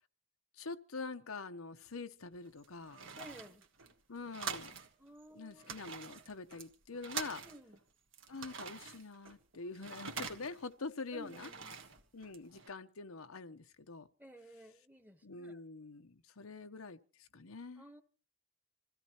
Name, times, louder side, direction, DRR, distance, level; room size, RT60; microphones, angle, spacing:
voice 1, 0.6-3.0 4.1-4.8 5.3-7.4 8.3-11.5 12.1-14.1 15.2-17.8, left 3 dB, 85° left, 1.0 m, -45 dB
sound 1, 2.3-4.9 5.2-5.3 5.5-7.8 8.1-10.7 11.1-12.7, right 6 dB, 65° right, 1.7 m, -45 dB
voice 2, 3.2-3.6 5.0-5.8 7.4-7.8 11.1-11.8 14.2-15.6 17.8-18.0, right 1 dB, 10° right, 1.2 m, -54 dB
27.0 x 16.0 x 3.0 m
head